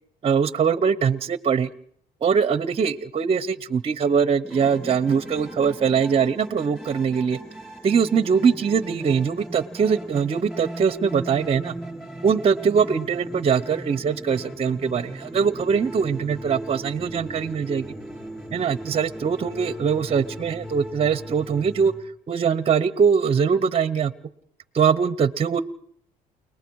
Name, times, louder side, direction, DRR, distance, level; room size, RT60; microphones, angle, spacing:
voice 1, 0.2-1.7 2.2-7.4 7.8-11.7 12.2-17.9 18.5-21.9 22.3-24.1 24.7-25.6, right 6 dB, 35° right, 17 dB, 0.8 m, -22 dB
sound 1, 4.4-21.9, right 1 dB, ahead, 6.3 m, -38 dB
29.5 x 19.5 x 4.7 m, 0.65 s
cardioid pair, 110°, 17 cm